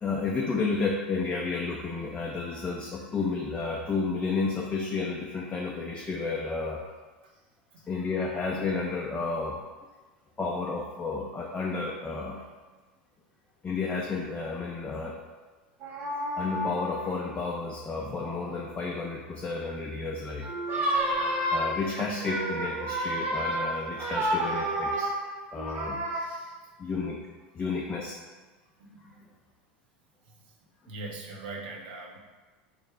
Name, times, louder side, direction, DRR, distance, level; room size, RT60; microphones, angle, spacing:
voice 1, 0.0-6.8 7.9-9.6 10.4-12.4 13.6-15.2 16.4-20.5 21.5-25.1 25.5-26.0 26.8-27.3 27.5-28.2, left 4 dB, 20° left, -1 dB, 0.4 m, -31 dB
sound 1, 15.8-17.1 18.2-18.5 20.4-26.2, right 1 dB, 40° right, 0.8 m, -30 dB
voice 2, 26.1-26.6 28.8-29.2 30.3-30.4 30.9-32.2, right 2 dB, 75° right, -1 dB, 0.6 m, -42 dB
3.2 x 2.1 x 3.5 m, 1.3 s
hypercardioid pair, 90°, 5 cm